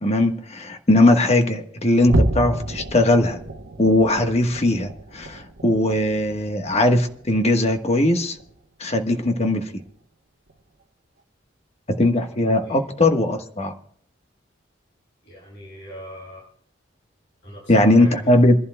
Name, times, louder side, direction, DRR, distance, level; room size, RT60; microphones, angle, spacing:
voice 1, 0.0-3.4 3.8-8.4 8.8-9.7 11.9-13.7 17.7-18.5, left 1 dB, 35° left, 6 dB, 1.3 m, -19 dB
sound 1, 2.0-8.7 9.1-9.4 9.8-9.9 10.5-10.6, right 1 dB, 80° right, 0.9 m, -30 dB
voice 2, 15.2-16.5 17.4-18.4, right 1 dB, 65° left, -6 dB, 7.4 m, -39 dB
28.0 x 11.5 x 2.2 m, 0.62 s
head